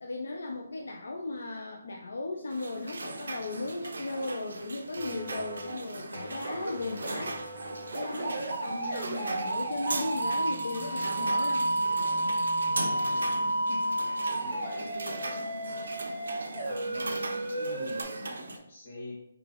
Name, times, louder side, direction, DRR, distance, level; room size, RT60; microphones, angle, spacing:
voice 1, 0.0-7.4 7.9-11.7 13.7-14.0 14.3-14.7 17.0-17.3, left 2 dB, 70° left, 1 dB, 0.4 m, -37 dB
sound 1, 2.5-18.6, right 2 dB, 75° right, 0.4 m, -39 dB
sound 2, 5.0-5.7 6.1-18.0, right 1 dB, 45° right, 0.8 m, -32 dB
voice 2, 12.6-13.6 14.4-15.4 16.6-19.1, left 1 dB, 30° left, -5 dB, 1.2 m, -44 dB
3.7 x 2.3 x 3.3 m, 0.80 s
hypercardioid pair, 180°, 0 cm